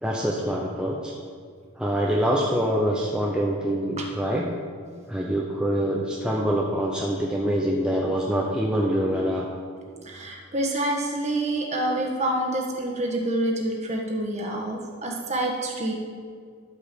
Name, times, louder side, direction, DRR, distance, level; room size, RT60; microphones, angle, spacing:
voice 1, 0.0-1.1 1.8-4.5 5.1-9.5, equal, 5° right, -3 dB, 0.7 m, -25 dB
voice 2, 10.0-15.9, right 1 dB, 30° right, 0 dB, 1.5 m, -27 dB
12.0 x 5.4 x 6.9 m, 2.1 s
head